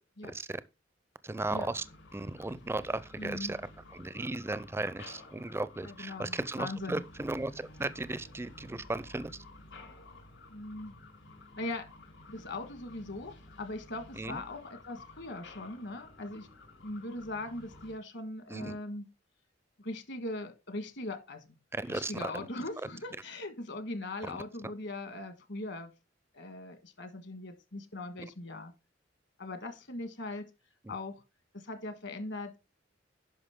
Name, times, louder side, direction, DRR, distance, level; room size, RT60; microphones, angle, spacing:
voice 1, 1.2-1.8 2.1-3.6 3.9-9.3 14.2-14.4 18.5-18.8 21.8-22.1 30.9-31.0, right 2 dB, 15° right, 0.4 m, -36 dB
sound 1, 1.3-17.9, left 2 dB, 80° left, 4.6 m, -53 dB
voice 2, 3.2-3.6 5.8-7.0 10.5-11.0 11.6-11.9 12.3-13.3 13.6-16.5 16.8-19.1 19.8-21.6 21.8-25.9 26.3-28.7 29.4-30.5 30.9-31.1 31.5-32.6, left 2 dB, 65° left, 1.6 m, -40 dB
10.5 x 5.9 x 3.6 m
head